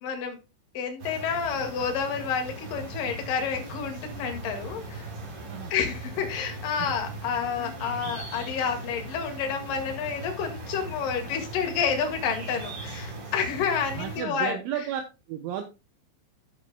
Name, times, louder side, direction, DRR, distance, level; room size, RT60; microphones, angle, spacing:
voice 1, 0.0-0.4 0.7-5.1 5.7-14.6, left 6 dB, 55° left, 4 dB, 2.9 m, -29 dB
sound 1, 1.0-14.2, right 2 dB, 45° right, 5.2 m, -39 dB
voice 2, 14.0-15.0 15.3-15.6, right 10 dB, 75° right, 6 dB, 3.1 m, -33 dB
13.5 x 7.9 x 2.2 m, 0.28 s
omnidirectional pair, 5.9 m